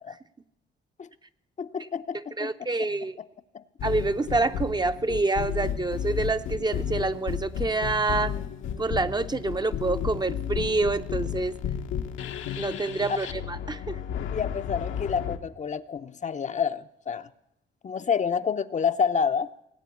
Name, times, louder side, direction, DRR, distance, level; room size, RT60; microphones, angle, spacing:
voice 1, 1.6-2.5 2.8-2.9 3.5-3.6 13.1-13.2 14.3-17.3 17.8-19.5, left 6 dB, 35° left, 10 dB, 0.7 m, -28 dB
voice 2, 2.4-3.2 3.8-8.3 8.8-11.5 12.6-14.0, right 3 dB, 20° right, 10 dB, 0.7 m, -27 dB
sound 1, 3.8-15.4, left 8 dB, 80° left, 1.2 m, -33 dB
18.5 x 8.4 x 8.4 m, 0.78 s
cardioid pair, 90°, 20 cm